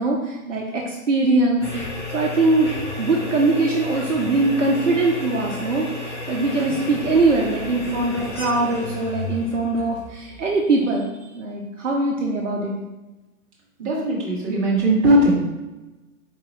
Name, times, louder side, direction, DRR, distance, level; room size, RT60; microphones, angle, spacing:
voice 1, 0.0-1.6 2.1-2.7 3.0-12.8, right 2 dB, 55° right, -1 dB, 0.7 m, -22 dB
sound 1, 1.6-10.7, left 2 dB, 20° left, 0.5 m, -32 dB
voice 2, 13.8-15.4, right 1 dB, 20° right, -6 dB, 1.1 m, -19 dB
4.3 x 2.9 x 3.7 m, 1.1 s
figure-of-eight pair, 120°, 45 cm